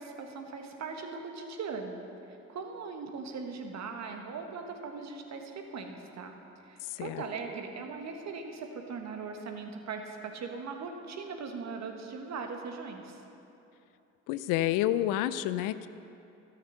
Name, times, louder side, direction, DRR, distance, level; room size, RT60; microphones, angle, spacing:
voice 1, 0.0-2.0 2.3-6.3 6.6-13.2, right 4 dB, 50° right, 4 dB, 1.5 m, -40 dB
voice 2, 6.8-7.2 14.3-15.9, left 13 dB, 60° left, 14 dB, 0.5 m, -29 dB
13.0 x 6.6 x 6.8 m, 2.9 s
hypercardioid pair, 50°, 35 cm